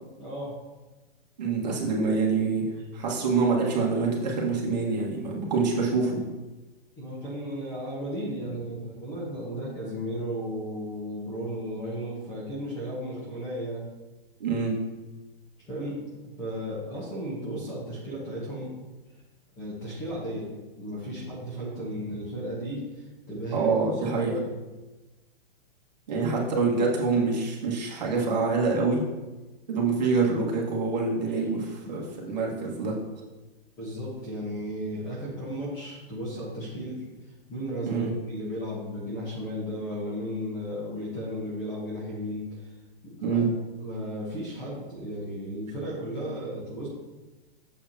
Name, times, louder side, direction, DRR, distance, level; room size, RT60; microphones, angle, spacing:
voice 1, 0.2-0.5 7.0-13.9 15.7-16.0 16.2-18.7 19.6-20.5 20.8-23.7 24.1-24.5 26.2-26.3 31.3-31.4 33.8-37.0 37.5-42.7 43.0-43.5 43.8-46.9, equal, 10° left, -6 dB, 1.1 m, -34 dB
voice 2, 1.4-2.6 2.9-6.2 14.4-14.7 23.5-24.3 26.1-29.0 29.7-33.0 37.8-38.1 43.2-43.5, right 4 dB, 45° right, -3 dB, 1.7 m, -26 dB
8.4 x 7.0 x 2.8 m, 1.2 s
hypercardioid pair, 180°, 30 cm